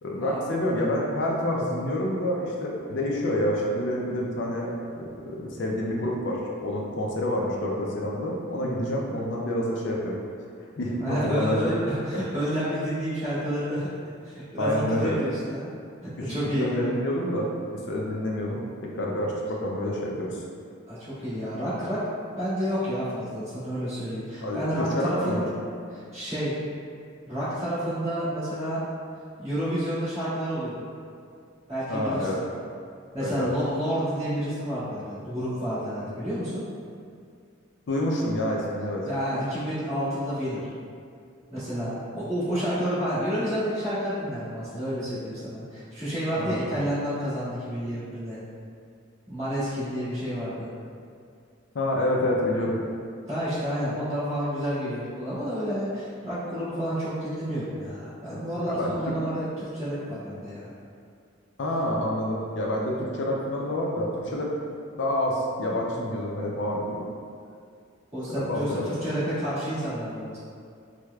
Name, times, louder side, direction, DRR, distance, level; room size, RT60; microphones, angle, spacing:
voice 1, 0.0-4.7 5.0-10.1 10.8-11.7 14.6-15.2 16.6-17.5 17.9-20.4 24.4-25.4 31.9-32.4 33.2-33.5 37.9-39.0 46.4-46.8 51.7-52.8 58.3-58.9 61.6-64.5 64.9-67.0 68.3-68.9, left 1 dB, 60° left, -2 dB, 0.4 m, -28 dB
voice 2, 11.0-13.9 14.2-15.7 16.0-16.9 20.9-22.0 22.4-25.5 25.9-26.5 27.2-28.9 29.4-30.9 31.7-32.4 33.1-36.6 39.0-40.6 41.5-48.4 49.3-50.7 53.3-60.7 68.1-70.4, equal, 30° right, -14 dB, 1.5 m, -30 dB
4.6 x 2.1 x 2.3 m, 2.3 s
head